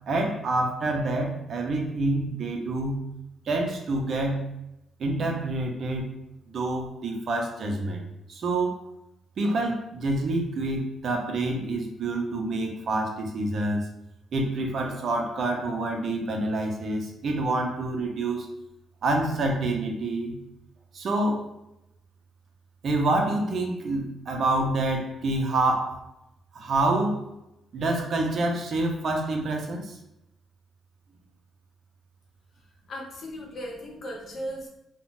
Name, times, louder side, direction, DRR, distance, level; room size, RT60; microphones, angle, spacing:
voice 1, 0.1-3.0 3.5-4.5 5.0-6.1 6.5-8.0 8.3-8.8 9.4-13.9 14.3-18.5 19.0-20.4 20.9-21.5 22.8-26.0 26.5-27.3 27.7-30.0, right 2 dB, 55° right, 2 dB, 0.6 m, -27 dB
voice 2, 32.9-34.7, equal, 55° left, -1 dB, 0.8 m, -36 dB
3.6 x 2.1 x 2.5 m, 0.86 s
cardioid pair, 90°, 0 cm